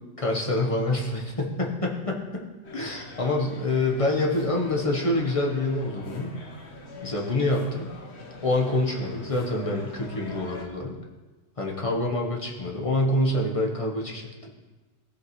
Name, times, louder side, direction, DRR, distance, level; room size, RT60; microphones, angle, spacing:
voice 1, 0.2-2.4 2.7-6.3 7.0-7.9 8.4-11.0 11.6-14.3, left 2 dB, 30° left, -1 dB, 1.1 m, -26 dB
sound 1, 2.6-10.6, left 1 dB, 60° left, 1.5 m, -43 dB
15.0 x 5.3 x 3.1 m, 1.2 s
omnidirectional pair, 1.3 m